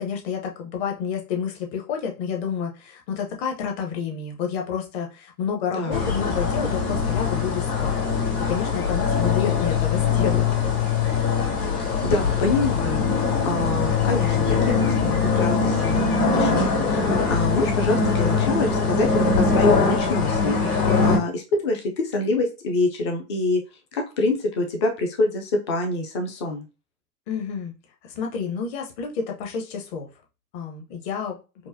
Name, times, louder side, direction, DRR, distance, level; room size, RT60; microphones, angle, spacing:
voice 1, 0.0-10.4 27.3-27.7 28.0-30.1 30.5-31.4, left 6 dB, 40° left, 3 dB, 0.9 m, -29 dB
voice 2, 5.7-6.1 12.0-23.6 23.9-26.6, left 2 dB, 20° left, 4 dB, 0.3 m, -26 dB
sound 1, 5.9-21.2, left 5 dB, 65° left, 2.1 m, -22 dB
4.6 x 2.1 x 2.7 m, 0.30 s
figure-of-eight pair, 110°, 49 cm